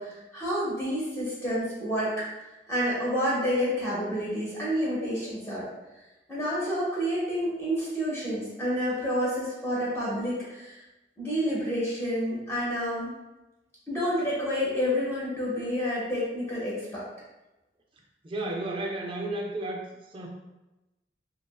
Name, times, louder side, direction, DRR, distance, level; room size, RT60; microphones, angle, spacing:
voice 1, 0.0-2.2 2.7-5.7 6.3-10.8 11.2-13.1 13.9-17.0, equal, 15° left, -7 dB, 0.7 m, -29 dB
voice 2, 18.2-19.8 20.1-20.3, right 2 dB, 30° right, -1 dB, 0.4 m, -32 dB
2.8 x 2.4 x 2.3 m, 1.0 s
head